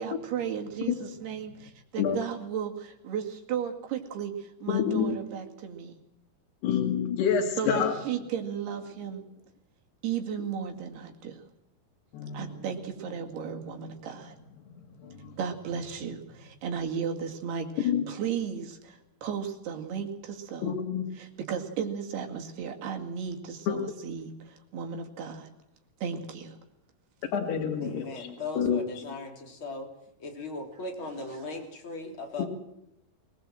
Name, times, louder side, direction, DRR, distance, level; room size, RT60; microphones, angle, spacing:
voice 1, 0.0-5.9 7.6-9.3 10.0-11.4 12.3-14.3 15.4-20.7 21.2-25.5 26.0-26.6, right 7 dB, 75° right, 2 dB, 4.3 m, -35 dB
voice 2, 4.7-5.1 6.6-7.9 12.1-12.5 15.0-15.3 17.8-18.0 20.6-21.0 23.7-23.8 27.3-28.3 28.6-28.8 32.4-32.5, left 7 dB, 90° left, 3 dB, 4.2 m, -27 dB
voice 3, 27.8-29.9 30.2-32.4, left 2 dB, 30° left, 1 dB, 3.9 m, -38 dB
23.0 x 19.5 x 7.7 m, 0.83 s
omnidirectional pair, 4.6 m